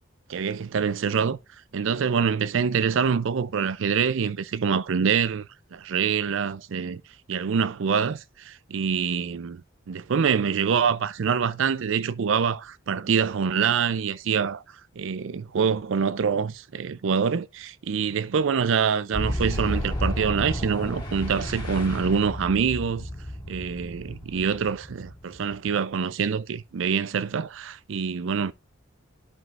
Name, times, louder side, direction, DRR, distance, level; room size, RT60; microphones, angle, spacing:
voice 1, 0.3-1.4 1.7-5.5 5.7-7.0 7.3-9.6 9.9-14.6 15.0-23.1 23.5-28.5, right 6 dB, 65° right, 0.4 m, -25 dB
Boom, 19.1-25.7, equal, 20° left, 2.2 m, -32 dB
11.0 x 5.1 x 2.5 m
head